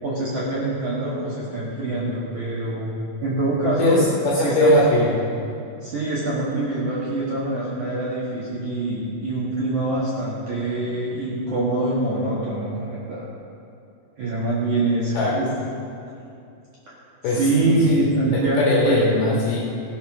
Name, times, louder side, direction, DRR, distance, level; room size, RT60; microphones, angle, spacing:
voice 1, 0.0-2.9 3.2-4.0 4.4-4.8 5.8-13.3 14.2-15.5 17.4-19.3, right 2 dB, 55° right, -8 dB, 2.2 m, -24 dB
voice 2, 3.8-5.2 15.1-15.3 17.2-17.4 17.7-18.0 18.3-19.6, left 1 dB, 65° left, -4 dB, 2.8 m, -20 dB
17.0 x 7.0 x 6.2 m, 2.6 s
omnidirectional pair, 5.9 m